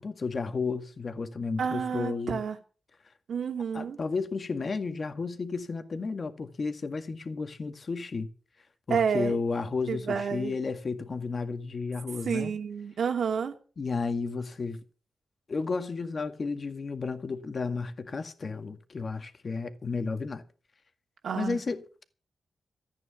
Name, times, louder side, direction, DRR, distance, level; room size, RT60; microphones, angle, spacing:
voice 1, 0.0-2.4 3.7-8.3 8.9-12.5 13.8-14.8 15.5-20.4 21.4-22.0, left 4 dB, 45° left, 1.9 m, -32 dB
voice 2, 1.6-2.6 3.3-4.0 8.9-9.3 9.9-10.6 12.2-13.5 21.2-21.6, right 6 dB, 80° right, 2.6 m, -29 dB
14.5 x 9.4 x 7.2 m
cardioid pair, 90°, 0 cm